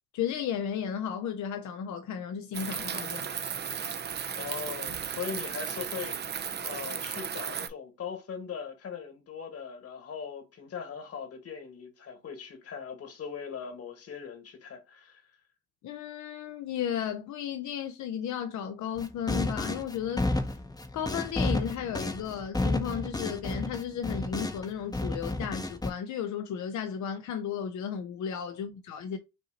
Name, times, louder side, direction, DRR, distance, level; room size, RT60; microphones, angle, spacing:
voice 1, 0.1-3.3 15.8-20.6 20.9-29.2, left 8 dB, 70° left, 0.6 m, -34 dB
sound 1, 2.5-7.7, right 7 dB, 35° right, 0.5 m, -35 dB
voice 2, 4.3-6.3 6.6-15.2 28.5-28.6, left 6 dB, 50° left, 1.5 m, -40 dB
sound 2, 19.0-24.7 24.9-25.9, left 2 dB, 15° left, 0.7 m, -31 dB
5.4 x 2.7 x 2.8 m
cardioid pair, 90°, 30 cm